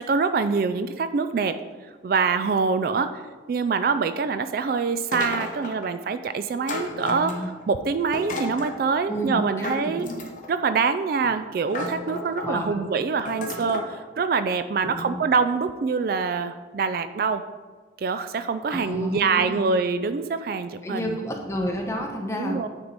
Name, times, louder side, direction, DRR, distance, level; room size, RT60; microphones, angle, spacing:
voice 1, 0.0-1.6 2.0-3.1 3.5-7.3 7.7-10.1 10.5-17.4 18.0-21.2 22.4-22.7, right 5 dB, 55° right, 11 dB, 0.3 m, -25 dB
sound 1, 5.1-5.9 6.7-7.6 8.1-8.8 9.6-10.6 11.2-11.3 11.7-12.6 13.3-13.9, left 2 dB, 45° left, 1.0 m, -33 dB
voice 2, 6.8-7.5 9.1-10.2 12.4-12.8 14.8-15.2 18.7-19.6 20.8-22.6, equal, 15° left, 1 dB, 0.9 m, -31 dB
9.4 x 4.5 x 4.0 m, 1.4 s
head